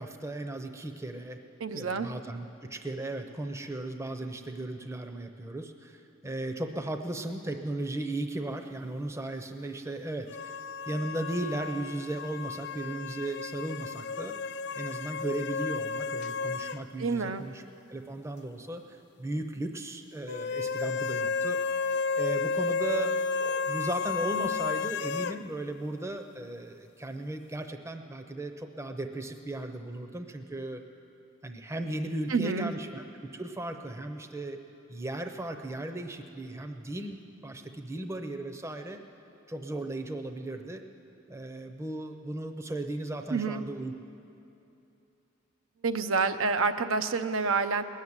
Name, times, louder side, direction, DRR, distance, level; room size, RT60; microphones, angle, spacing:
voice 1, 0.0-1.4 1.7-10.6 10.9-14.4 14.7-17.6 17.9-23.1 23.4-30.8 31.4-33.1 33.3-34.6 34.9-37.2 37.4-39.0 39.5-40.8 41.3-43.9, right 2 dB, 15° right, 6 dB, 0.6 m, -36 dB
voice 2, 1.6-2.1 17.0-17.5 32.3-32.7 43.3-43.6 45.8-47.8, right 4 dB, 80° right, 8 dB, 0.6 m, -28 dB
sound 1, 10.3-16.8 17.1-17.2 20.3-25.4, left 4 dB, 55° left, 0.3 m, -32 dB
20.5 x 7.3 x 9.6 m, 2.8 s
head